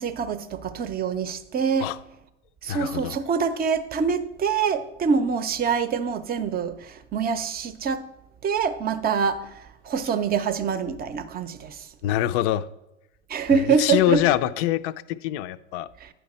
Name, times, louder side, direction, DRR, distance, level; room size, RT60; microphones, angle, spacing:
voice 1, 0.0-1.9 2.6-8.1 8.4-11.9 13.3-14.2 16.0-16.1, right 6 dB, 25° right, 0.7 m, -25 dB
voice 2, 2.7-3.2 12.0-12.7 13.8-15.9, left 13 dB, 50° left, 0.5 m, -24 dB
9.6 x 5.7 x 4.2 m
hypercardioid pair, 95°, 36 cm